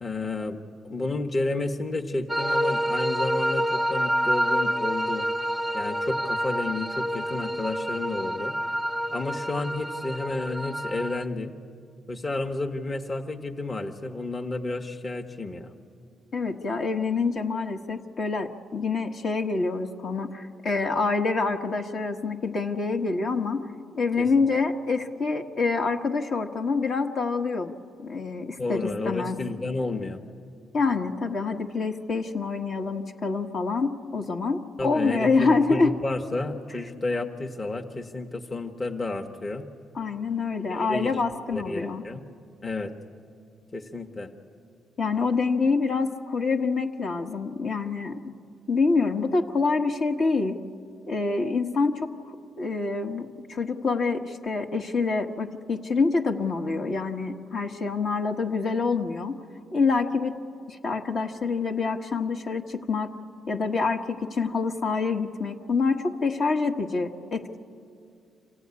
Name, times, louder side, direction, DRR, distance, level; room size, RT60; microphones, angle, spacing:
voice 1, 0.0-5.3 5.7-8.6 9.1-11.5 12.1-15.7 24.2-24.3 28.6-30.2 34.8-39.7 40.7-41.1 41.5-42.2 42.6-42.9 43.7-44.3, left 2 dB, 30° left, 4 dB, 1.2 m, -31 dB
sound 1, 2.3-11.2, equal, ahead, 0.9 m, -28 dB
voice 2, 16.3-23.6 23.9-27.7 28.0-29.4 30.7-35.9 39.9-42.0 45.0-48.2 48.7-50.6 51.1-59.4 59.7-60.3 60.7-63.2 63.5-67.6, left 4 dB, 55° left, 2 dB, 1.4 m, -26 dB
27.0 x 15.0 x 9.6 m, 2.4 s
cardioid pair, 90°, 0 cm